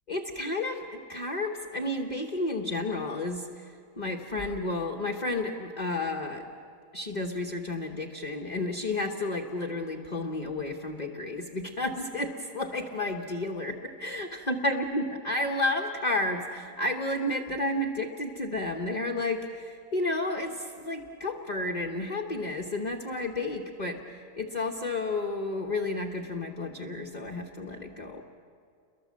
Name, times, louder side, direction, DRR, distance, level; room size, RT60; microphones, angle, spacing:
voice 1, 0.1-6.5 6.9-28.2, left 2 dB, 30° left, 1 dB, 1.3 m, -31 dB
30.0 x 22.5 x 7.6 m, 2.3 s
omnidirectional pair, 1.8 m